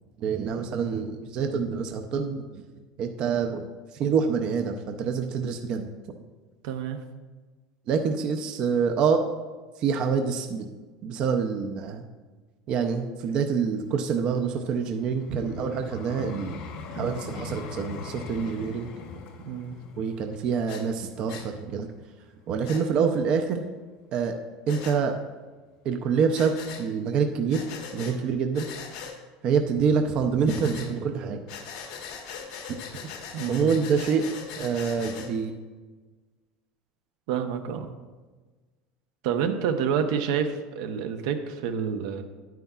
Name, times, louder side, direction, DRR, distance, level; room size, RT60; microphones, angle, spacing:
voice 1, 0.2-2.6 3.0-3.7 4.0-5.9 7.9-9.2 9.8-10.7 11.0-12.0 12.7-16.6 16.9-18.9 20.0-21.9 22.5-23.6 24.1-24.4 24.7-25.2 25.8-27.6 27.9-28.7 29.4-31.4 33.5-34.2 34.6-35.5, right 6 dB, 40° right, 5 dB, 0.5 m, -26 dB
voice 2, 6.6-7.0 19.4-19.8 33.3-33.7 37.3-37.9 39.2-42.2, right 7 dB, 80° right, 7 dB, 0.7 m, -28 dB
Vehicle, 13.7-22.8 23.4-23.6, left 4 dB, 55° left, 1.0 m, -42 dB
Breathing, 20.7-20.8 21.3-21.5 22.6-22.8 24.7-25.0 26.3-26.8 27.5-28.1 28.5-29.1 30.5-30.9 31.5-35.3, left 6 dB, 80° left, 1.3 m, -40 dB
9.9 x 9.2 x 2.3 m, 1.3 s
cardioid pair, 155°, 2 cm